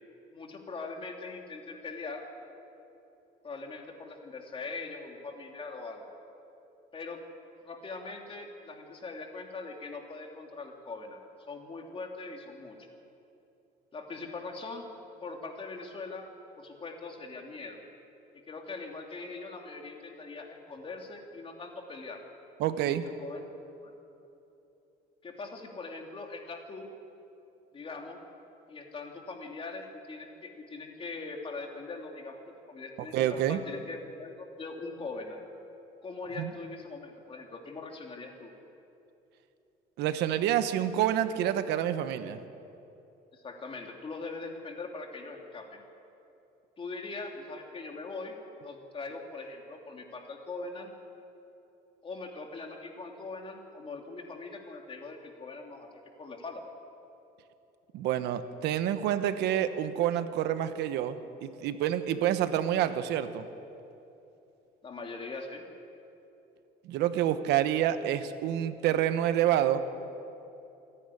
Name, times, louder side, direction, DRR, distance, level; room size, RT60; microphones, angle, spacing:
voice 1, 0.3-2.2 3.4-6.0 6.9-7.2 7.6-12.8 13.9-14.9 15.2-16.3 16.6-17.8 18.3-22.2 22.9-23.5 23.8-23.9 25.2-26.9 27.7-28.2 28.7-32.4 32.7-35.4 36.0-38.5 43.3-45.8 46.8-50.9 52.0-55.9 56.2-56.6 64.8-65.6, left 3 dB, 30° left, 2 dB, 3.1 m, -41 dB
voice 2, 22.6-23.0 33.1-33.6 36.4-36.5 40.0-42.4 57.9-63.4 66.8-69.8, right 11 dB, 85° right, 11 dB, 1.1 m, -28 dB
27.5 x 10.0 x 10.0 m, 2.9 s
cardioid pair, 110°, 17 cm